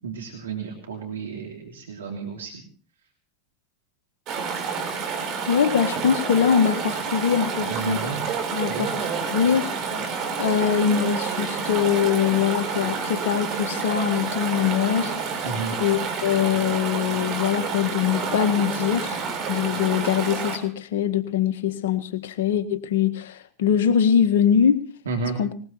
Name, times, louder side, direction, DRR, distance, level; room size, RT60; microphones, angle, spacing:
voice 1, 0.0-2.6 7.6-8.2 8.7-8.9 15.4-15.7 25.1-25.4, right 5 dB, 90° right, 1 dB, 3.0 m, -32 dB
Chatter / Stream, 4.3-20.6, right 5 dB, 50° right, 4.6 m, -29 dB
voice 2, 5.5-8.1 8.5-9.7 10.4-15.1 15.8-19.2 19.5-24.8 25.4-25.5, left 8 dB, 75° left, 7 dB, 1.6 m, -22 dB
20.5 x 20.0 x 3.1 m, 0.39 s
hypercardioid pair, 90°, 0 cm